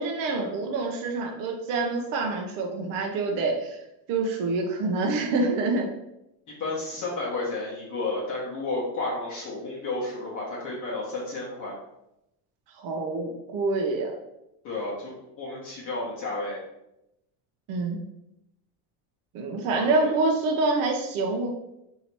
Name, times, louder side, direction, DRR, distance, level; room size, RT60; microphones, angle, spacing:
voice 1, 0.0-3.8 4.1-5.9 12.8-14.1 17.7-18.0 19.3-21.5, right 3 dB, 45° right, 1 dB, 0.5 m, -26 dB
voice 2, 6.6-11.8 14.6-16.6 19.7-20.2, left 2 dB, 35° left, -5 dB, 0.9 m, -32 dB
2.8 x 2.8 x 4.4 m, 0.86 s
cardioid pair, 160°, 50 cm